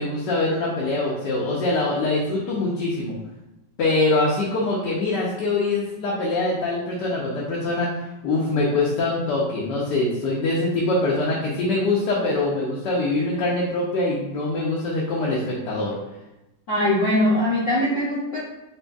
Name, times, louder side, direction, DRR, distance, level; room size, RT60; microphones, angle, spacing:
voice 1, 0.0-3.2 3.8-7.9 8.2-15.9, left 2 dB, 75° left, -4 dB, 1.3 m, -23 dB
voice 2, 16.7-18.4, left 1 dB, 55° left, -8 dB, 0.9 m, -21 dB
5.1 x 2.7 x 2.3 m, 0.93 s
omnidirectional pair, 1.9 m